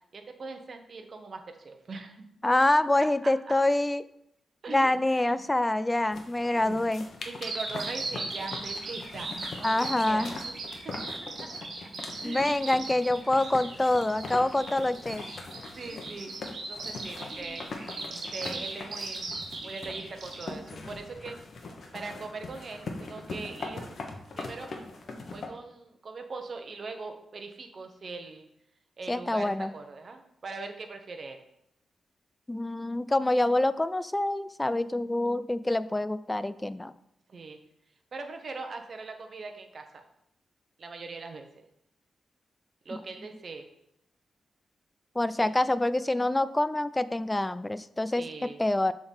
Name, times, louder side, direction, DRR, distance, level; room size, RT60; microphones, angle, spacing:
voice 1, 0.1-2.3 3.2-3.3 4.6-5.0 5.3-5.4 6.6-6.8 7.2-9.3 9.6-9.8 10.1-11.0 11.8-11.9 12.2-12.7 15.5-17.6 18.1-19.4 19.6-21.4 21.9-24.0 24.3-24.7 25.3-28.5 29.0-31.4 37.3-37.6 38.1-40.0 40.8-41.6 42.8-43.6 45.4-45.5 48.2-48.6, right 3 dB, 50° right, 5 dB, 1.0 m, -41 dB
voice 2, 2.4-4.0 4.7-7.1 9.6-10.3 12.2-15.2 29.1-29.7 32.5-36.9 45.2-48.9, left 1 dB, 15° left, 15 dB, 0.3 m, -26 dB
sound 1, 6.1-25.5, left 3 dB, 55° left, 1.1 m, -42 dB
Bird vocalization bird call bird song, 7.4-20.5, right 3 dB, 70° right, 1.7 m, -38 dB
7.0 x 3.8 x 5.4 m, 0.78 s
cardioid pair, 100°, 0 cm